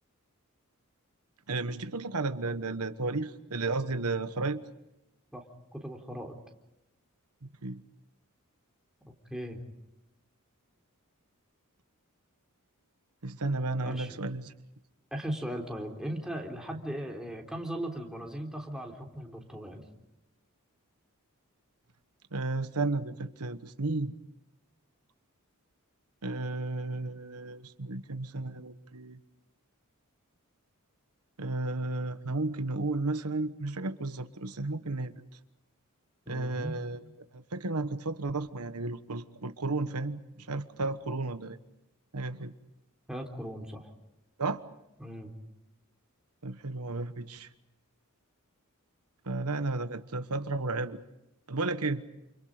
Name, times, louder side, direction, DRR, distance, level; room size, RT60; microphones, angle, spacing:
voice 1, 1.5-4.6 7.4-7.8 13.2-14.5 22.3-24.1 26.2-29.2 31.4-35.1 36.3-37.0 37.3-41.6 42.1-42.5 44.4-44.6 46.4-47.5 49.2-51.0 51.5-52.0, right 3 dB, 85° right, 10 dB, 1.3 m, -33 dB
voice 2, 5.7-6.4 9.1-9.6 13.8-14.1 15.1-19.8 36.3-36.8 43.1-43.9 45.0-45.3, right 1 dB, 5° right, 1 dB, 3.7 m, -38 dB
29.5 x 28.5 x 5.1 m, 0.90 s
head